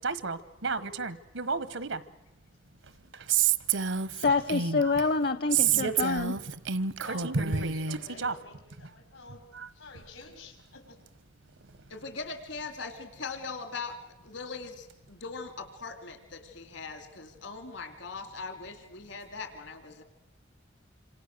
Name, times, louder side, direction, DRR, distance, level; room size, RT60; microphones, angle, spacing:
voice 1, 0.0-2.0 3.1-3.3 5.7-6.2 7.2-7.7 8.2-8.3 9.5-9.7, right 3 dB, 90° right, 1.2 m, -33 dB
Female speech woman speaking, 3.3-5.0 5.5-8.0, right 8 dB, 70° right, 0.8 m, -28 dB
voice 2, 4.1-6.3, left 4 dB, 55° left, 0.9 m, -27 dB
voice 3, 5.5-6.0 7.0-9.4 9.7-11.0, left 3 dB, 90° left, 5.9 m, -49 dB
voice 4, 11.9-14.0 14.2-20.0, left 4 dB, 75° left, 2.7 m, -40 dB
26.5 x 26.5 x 6.7 m
head